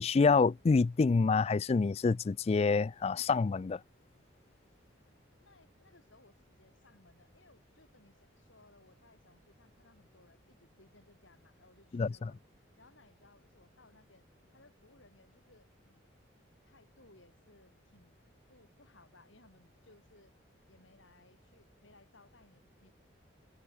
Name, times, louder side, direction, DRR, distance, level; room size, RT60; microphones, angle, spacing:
voice 1, 0.0-3.8 11.9-12.3, left 4 dB, 30° left, 0.3 m, -27 dB
voice 2, 5.4-12.4 12.8-14.2 14.5-16.0 16.6-18.2 18.5-20.3 20.7-22.9, left 2 dB, 70° left, 7.4 m, -63 dB
head